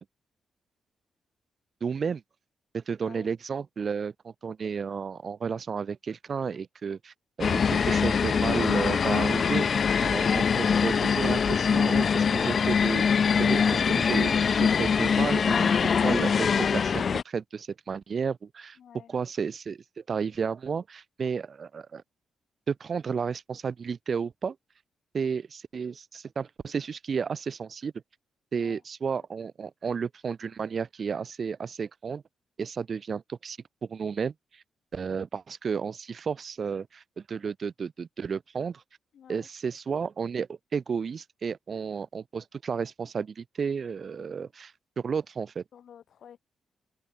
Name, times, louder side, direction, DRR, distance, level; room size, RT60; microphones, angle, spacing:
voice 1, 1.8-2.2 2.7-15.7 16.0-18.8 19.1-22.0 22.7-24.6 25.1-27.9 28.5-32.2 32.6-34.6 34.9-38.8 39.3-45.6, right 6 dB, 55° right, 2.2 m, -32 dB
sound 1, 7.4-17.2, left 6 dB, 55° left, 0.4 m, -23 dB
voice 2, 18.8-19.1 28.5-28.8 39.1-39.5 45.7-46.4, left 9 dB, 70° left, 6.5 m, -51 dB
open air
supercardioid pair, 60°, 0 cm